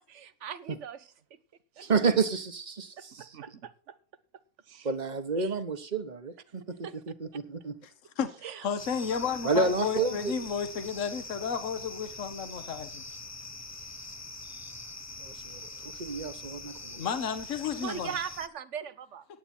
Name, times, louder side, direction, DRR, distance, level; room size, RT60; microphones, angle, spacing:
voice 1, 0.1-1.1 1.8-1.9 3.2-4.0 4.7-4.9 5.4-5.5 6.8-7.0 8.4-8.8 9.5-10.1 17.8-19.3, right 8 dB, 60° right, 1.1 m, -40 dB
voice 2, 1.8-3.3 4.8-6.8 7.1-7.8 9.4-10.3 15.2-17.1, right 4 dB, 35° right, 1.2 m, -30 dB
voice 3, 8.6-13.0 17.0-18.1, left 7 dB, 60° left, 1.5 m, -32 dB
sound 1, 8.8-18.5, left 3 dB, 20° left, 0.5 m, -43 dB
16.5 x 9.0 x 4.4 m
omnidirectional pair, 1.5 m